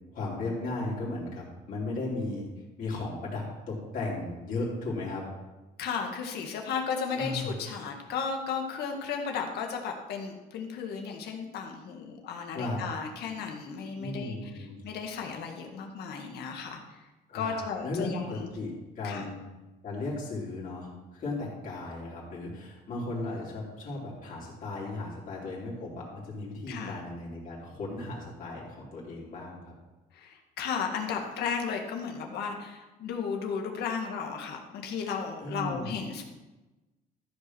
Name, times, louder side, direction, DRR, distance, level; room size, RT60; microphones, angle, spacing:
voice 1, 0.1-2.5 2.8-5.2 7.2-7.5 12.5-12.8 14.0-14.8 17.3-19.5 19.8-29.7 35.4-35.9, left 2 dB, 55° left, -4 dB, 3.8 m, -36 dB
voice 2, 5.8-14.5 14.8-17.0 17.3-18.5 19.0-19.3 26.7-27.0 30.1-36.2, left 6 dB, 75° left, 2 dB, 1.8 m, -34 dB
13.5 x 5.2 x 6.3 m, 1.1 s
cardioid pair, 110°, 17 cm